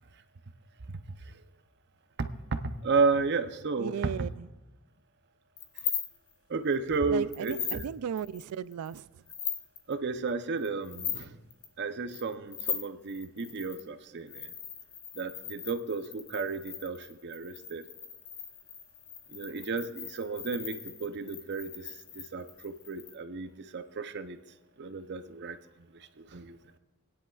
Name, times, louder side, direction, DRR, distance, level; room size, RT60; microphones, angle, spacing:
voice 1, 2.2-4.3 6.5-7.8 9.9-11.3 11.8-14.5 15.2-17.8 19.3-24.4 24.8-25.6 26.3-26.6, right 4 dB, 50° right, 0.6 m, -32 dB
voice 2, 3.8-4.5 7.1-9.2, right 8 dB, 85° right, 0.3 m, -36 dB
sound 1, 5.6-6.3 6.7-7.0 7.3-7.8 8.2-9.0 9.3-9.9 10.6-11.2 11.5-11.7 12.1-13.8 14.3-23.1, left 8 dB, 65° left, 1.4 m, -39 dB
19.5 x 10.0 x 2.4 m
head